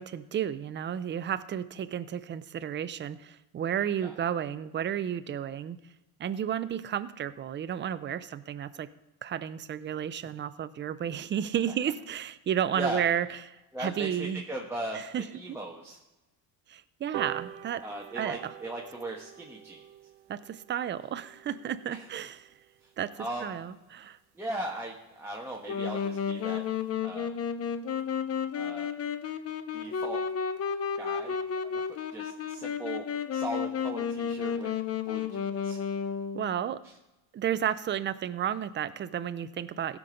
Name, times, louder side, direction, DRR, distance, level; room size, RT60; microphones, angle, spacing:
voice 1, 0.0-5.8 6.2-8.9 9.2-13.4 13.8-14.4 14.9-15.6 16.7-17.8 18.1-18.5 20.3-22.5 23.0-24.2 36.3-36.8 37.3-40.0, right 9 dB, 25° right, 14 dB, 0.4 m, -32 dB
voice 2, 13.7-15.0 15.3-16.0 17.8-19.8 21.9-22.0 23.2-23.5 24.4-26.6 27.0-27.3 28.5-28.9 29.7-30.2 31.0-31.4 31.7-33.0 33.3-34.7 35.1-35.8, right 1 dB, 5° right, -4 dB, 1.2 m, -38 dB
sound 1, 17.1-23.9 24.3-24.4 24.7-24.8 25.1-25.2 25.5-25.6 25.9-26.2 26.6-26.7, right 13 dB, 70° right, 1.0 m, -45 dB
Wind instrument woodwind instrument, 25.7-36.6, left 7 dB, 35° left, 0.7 m, -32 dB
16.0 x 6.0 x 5.1 m, 1.0 s
cardioid pair, 130°, 44 cm